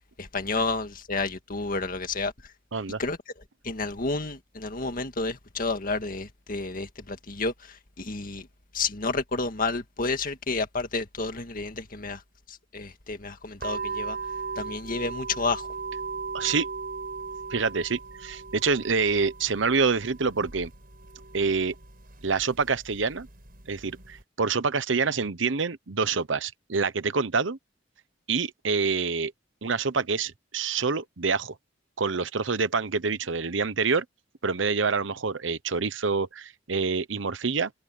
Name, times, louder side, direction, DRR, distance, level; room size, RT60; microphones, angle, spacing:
voice 1, 0.2-2.3 3.0-3.2 3.6-8.5 8.7-12.2 12.5-14.2 14.6-15.7, left 3 dB, 45° left, 1.9 m, -30 dB
sound 1, 13.6-24.2, right 4 dB, 50° right, 6.5 m, -38 dB
voice 2, 16.3-16.7 17.5-20.7 21.3-21.8 22.2-23.3 23.7-27.6 28.3-29.3 29.6-31.6 32.0-34.0 34.4-37.7, right 4 dB, 75° right, 0.9 m, -26 dB
open air
head